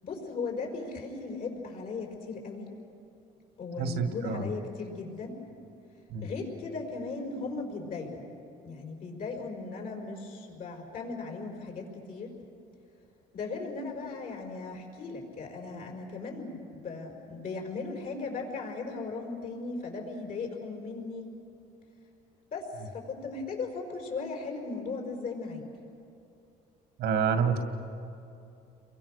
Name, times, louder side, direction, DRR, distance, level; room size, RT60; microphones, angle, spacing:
voice 1, 0.0-2.7 3.6-5.4 6.2-8.3 8.6-12.3 13.3-21.3 22.5-25.7, left 4 dB, 55° left, 1 dB, 5.6 m, -37 dB
voice 2, 3.8-4.5 6.1-6.3 27.0-27.6, right 6 dB, 80° right, 7 dB, 2.3 m, -28 dB
29.0 x 23.0 x 6.8 m, 2.7 s
cardioid pair, 110°, 17 cm